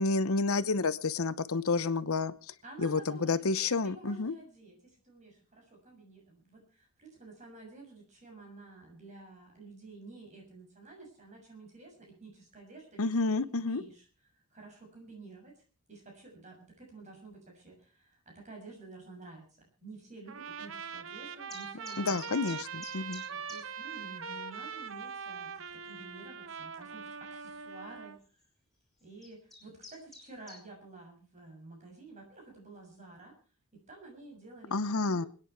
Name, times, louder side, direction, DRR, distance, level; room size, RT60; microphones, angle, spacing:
voice 1, 0.0-2.3 2.8-4.3 13.0-13.8 22.0-23.2 34.7-35.3, left 3 dB, 75° left, 15 dB, 0.9 m, -30 dB
voice 2, 2.6-14.1 14.3-15.6 15.9-22.4 23.3-28.2 29.0-33.3 33.7-35.3, right 3 dB, 35° right, 1 dB, 6.8 m, -51 dB
Trumpet, 20.3-28.2, right 6 dB, 60° right, 1.0 m, -42 dB
sound 1, 21.5-23.6 23.9-24.0 24.5-24.6 24.9-25.3 25.9-26.0 27.3-27.5 28.2-28.4 29.0-30.6, left 2 dB, ahead, 6.0 m, -49 dB
27.0 x 9.9 x 4.6 m, 0.37 s
head